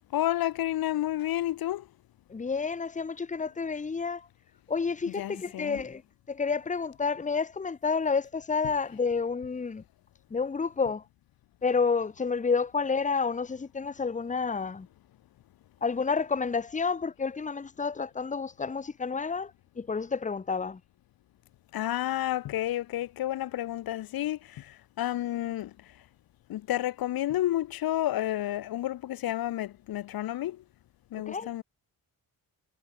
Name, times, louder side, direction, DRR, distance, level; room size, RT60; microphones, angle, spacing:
voice 1, 0.1-1.9 5.1-5.8 21.7-25.7 26.5-30.6 31.1-31.6, left 13 dB, 80° left, 1.4 m, -30 dB
voice 2, 2.3-4.3 4.7-6.0 6.3-9.8 10.3-11.0 11.6-14.9 15.8-20.8 31.3-31.5, left 5 dB, 20° left, 1.3 m, -30 dB
cardioid pair, 125°, 35 cm